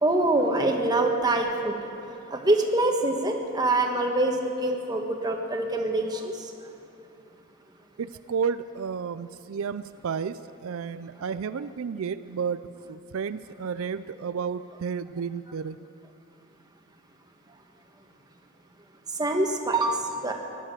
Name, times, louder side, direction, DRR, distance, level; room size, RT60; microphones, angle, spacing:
voice 1, 0.0-1.7 2.3-6.3 19.2-20.3, right 2 dB, 20° right, 2 dB, 1.4 m, -25 dB
voice 2, 8.0-15.8, right 6 dB, 80° right, 13 dB, 0.4 m, -32 dB
17.0 x 11.5 x 7.5 m, 2.9 s
head